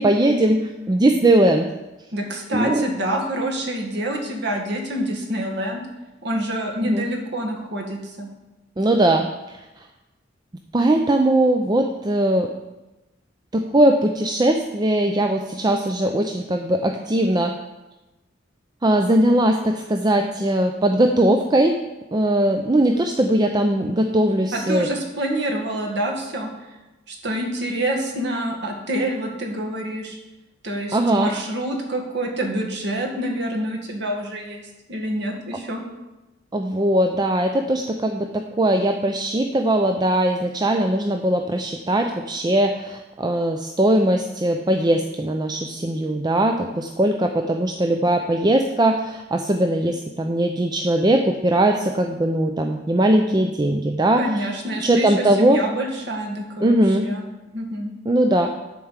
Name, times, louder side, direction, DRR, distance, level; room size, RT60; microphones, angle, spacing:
voice 1, 0.0-1.7 2.5-2.8 6.8-7.1 8.8-9.6 10.7-12.5 13.5-17.5 18.8-21.8 22.1-24.9 30.9-31.3 36.5-54.5 54.8-55.6 56.6-57.1 58.1-58.5, right 1 dB, 20° right, 4 dB, 0.5 m, -20 dB
voice 2, 2.1-5.8 6.2-8.3 24.5-26.5 27.1-30.2 30.6-34.6 34.9-35.8 54.2-57.2 57.5-57.9, right 1 dB, 60° right, 1 dB, 1.8 m, -27 dB
11.0 x 4.6 x 7.3 m, 1.0 s
head